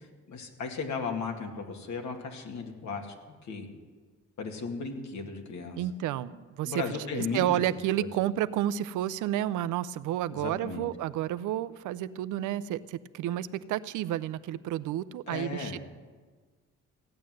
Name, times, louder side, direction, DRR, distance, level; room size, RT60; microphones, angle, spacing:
voice 1, 0.0-3.1 3.4-3.7 4.4-5.8 6.6-7.5 8.0-8.1 10.3-10.8 15.3-15.8, left 4 dB, 70° left, 3 dB, 2.3 m, -36 dB
voice 2, 5.7-15.8, right 12 dB, 90° right, 16 dB, 0.6 m, -31 dB
16.0 x 9.5 x 7.7 m, 1.5 s
cardioid pair, 90°, 30 cm